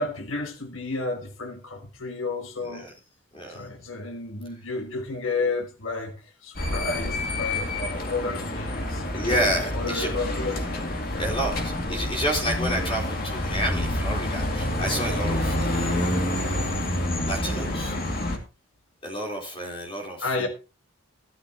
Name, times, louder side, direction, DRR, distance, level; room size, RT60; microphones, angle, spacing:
voice 1, 0.0-2.9 3.5-9.0 9.7-10.7 11.1-11.3 20.2-20.5, left 3 dB, 80° left, 1.4 m, -31 dB
voice 2, 3.3-3.6 9.1-10.1 11.2-16.6 17.3-18.0 19.0-20.5, equal, 25° left, 3.9 m, -30 dB
sound 1, 6.6-18.4, left 1 dB, 45° left, 2.3 m, -28 dB
13.5 x 13.0 x 2.9 m
head